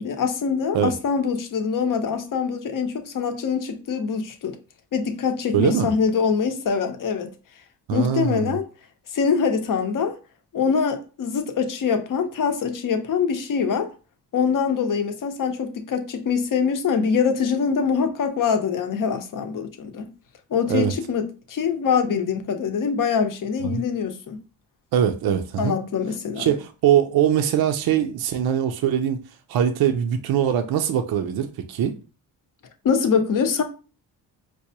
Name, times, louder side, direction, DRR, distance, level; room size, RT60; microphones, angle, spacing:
voice 1, 0.0-4.6 4.9-7.3 7.9-8.6 9.1-10.2 10.5-13.9 14.3-20.1 20.5-24.4 25.6-26.5 32.8-33.6, left 6 dB, 50° left, 0.7 m, -24 dB
voice 2, 5.5-5.9 7.9-8.6 20.7-20.9 23.6-23.8 24.9-25.8 26.4-29.2 29.5-31.9, right 9 dB, 60° right, 0.5 m, -22 dB
4.6 x 2.2 x 2.7 m
cardioid pair, 75°, 42 cm